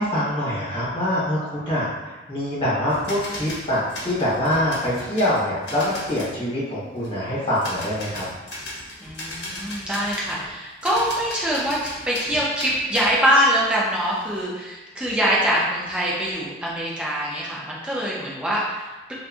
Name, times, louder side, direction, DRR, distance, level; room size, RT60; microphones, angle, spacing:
voice 1, 0.0-8.2, left 1 dB, 30° left, -10 dB, 1.4 m, -24 dB
sound 1, 2.9-6.3 7.0-7.1 7.5-10.5 10.8-13.2 13.5-14.4, left 1 dB, 70° left, 0.8 m, -37 dB
voice 2, 9.0-19.1, equal, 5° right, -6 dB, 0.5 m, -24 dB
3.1 x 2.3 x 2.5 m, 1.2 s
head